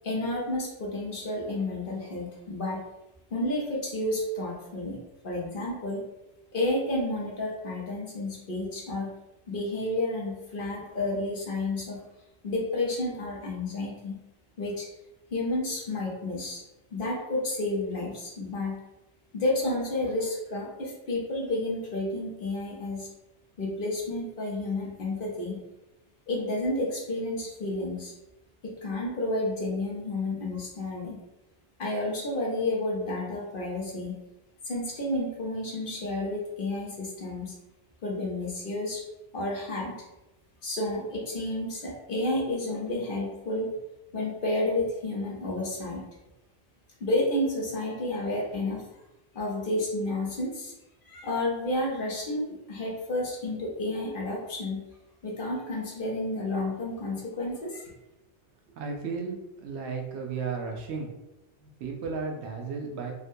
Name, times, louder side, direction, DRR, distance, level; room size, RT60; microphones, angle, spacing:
voice 1, 0.0-2.8 3.3-5.0 5.2-6.0 6.5-9.1 9.5-12.0 12.4-14.2 14.6-14.9 15.3-16.6 16.9-18.8 19.3-23.1 23.6-25.6 26.3-28.1 28.6-31.2 31.8-34.2 34.6-37.5 38.0-39.0 39.3-40.1 40.6-43.7 44.1-46.0 47.0-48.8 49.3-50.7 51.0-54.9 55.2-57.9, left 2 dB, 55° left, -3 dB, 0.9 m, -31 dB
voice 2, 58.7-61.1 61.6-63.1, right 5 dB, 85° right, 1 dB, 0.9 m, -34 dB
3.6 x 2.1 x 2.6 m, 0.97 s
omnidirectional pair, 1.1 m